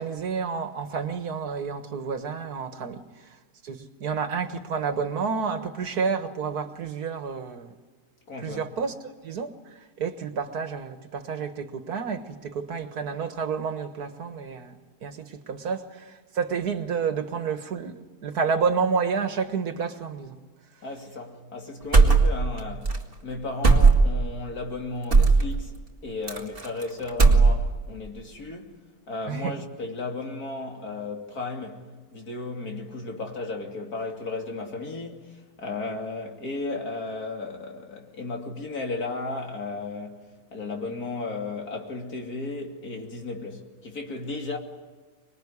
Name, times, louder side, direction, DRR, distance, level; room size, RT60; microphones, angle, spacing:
voice 1, 0.0-3.0 3.6-7.7 8.4-8.9 9.2-20.4 29.3-29.6, right 5 dB, 85° right, 2.0 m, -30 dB
voice 2, 8.3-8.7 20.8-28.8 29.1-40.2 40.5-44.6, left 3 dB, 75° left, 3.3 m, -34 dB
sound 1, 21.9-22.6 22.8-23.0 23.6-24.3 25.1-25.4 26.3-26.8 27.1-27.8, right 4 dB, 35° right, 2.2 m, -17 dB
25.5 x 21.0 x 9.8 m
omnidirectional pair, 1.6 m